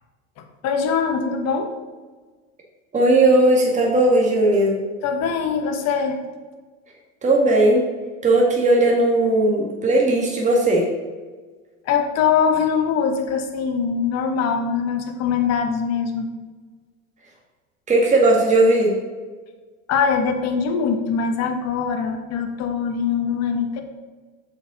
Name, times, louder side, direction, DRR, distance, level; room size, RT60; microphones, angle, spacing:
voice 1, 0.6-1.7 5.0-6.2 11.9-16.3 19.9-23.8, left 6 dB, 40° left, 5 dB, 1.2 m, -22 dB
voice 2, 2.9-4.7 7.2-7.8 8.2-10.9 17.9-18.9, right 2 dB, 20° right, -2 dB, 1.9 m, -17 dB
6.9 x 5.5 x 4.9 m, 1.4 s
supercardioid pair, 115°, 40 cm